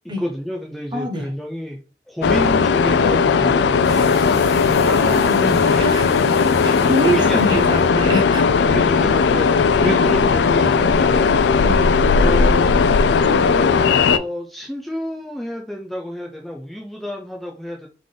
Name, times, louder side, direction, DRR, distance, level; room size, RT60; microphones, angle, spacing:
voice 1, 0.0-1.8 2.1-4.7 6.6-7.7 8.4-11.4 12.2-12.8 13.2-17.9, equal, ahead, 0 dB, 0.5 m, -29 dB
voice 2, 0.9-1.3 4.8-6.3 6.6-8.4 9.8-10.0 11.6-11.9, right 1 dB, 25° right, 3 dB, 0.9 m, -25 dB
sound 1, 2.2-14.2, left 5 dB, 75° left, 0.3 m, -17 dB
sound 2, 3.8-10.3, left 1 dB, 35° left, 1.5 m, -37 dB
3.8 x 3.7 x 3.3 m, 0.36 s
head